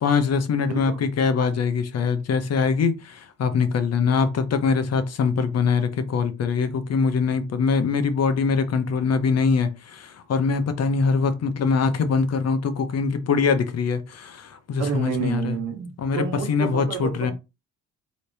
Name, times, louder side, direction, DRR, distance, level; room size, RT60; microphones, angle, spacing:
voice 1, 0.0-15.6 16.0-17.3, left 5 dB, 55° left, 0.8 m, -23 dB
voice 2, 0.7-1.1 14.8-17.3, right 7 dB, 80° right, 1.1 m, -29 dB
4.1 x 2.9 x 3.3 m
cardioid pair, 90°, 30 cm